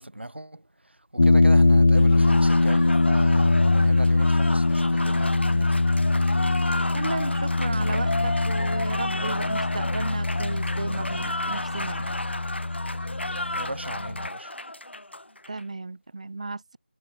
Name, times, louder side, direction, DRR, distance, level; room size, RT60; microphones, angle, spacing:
voice 1, 0.0-5.9 13.5-14.5, right 1 dB, 85° right, 1.1 m, -38 dB
sound 1, 1.2-14.3, left 2 dB, 40° left, 0.3 m, -22 dB
Applause, 2.0-15.6, left 1 dB, 90° left, 0.8 m, -33 dB
voice 2, 6.9-12.1 15.5-16.8, right 3 dB, 35° right, 0.6 m, -34 dB
figure-of-eight pair, 170°, 6 cm